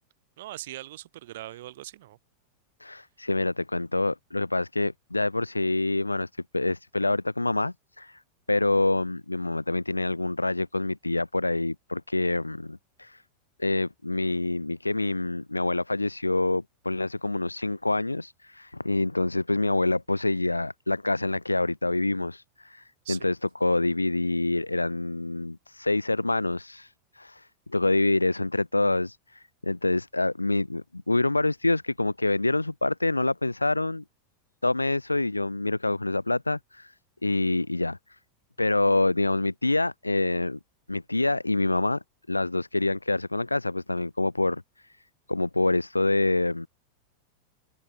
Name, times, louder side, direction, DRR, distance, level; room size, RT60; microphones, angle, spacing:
voice 1, 0.4-2.2 23.0-23.3, right 15 dB, 55° right, 0.9 m, -40 dB
voice 2, 2.8-8.2 8.5-13.2 13.6-34.0 34.6-36.9 37.2-38.0 38.6-40.6 40.9-42.0 42.3-44.9 45.3-46.7, left 2 dB, 85° left, 0.5 m, -26 dB
open air
figure-of-eight pair, 90°, 0 cm